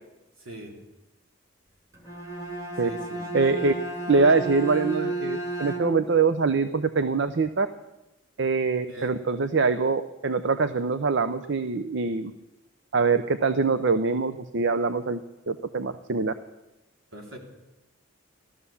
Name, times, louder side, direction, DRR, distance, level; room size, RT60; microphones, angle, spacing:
voice 1, 0.4-0.8 2.8-3.3 8.9-9.2 17.1-17.4, right 1 dB, 75° right, 1 dB, 3.5 m, -41 dB
Bowed string instrument, 1.9-6.2, right 2 dB, 15° right, 2.3 m, -33 dB
voice 2, 3.3-3.7 4.1-7.7 8.4-12.3 12.9-15.2 15.5-16.3, right 4 dB, 55° right, 11 dB, 0.6 m, -24 dB
15.0 x 12.5 x 7.1 m, 0.97 s
head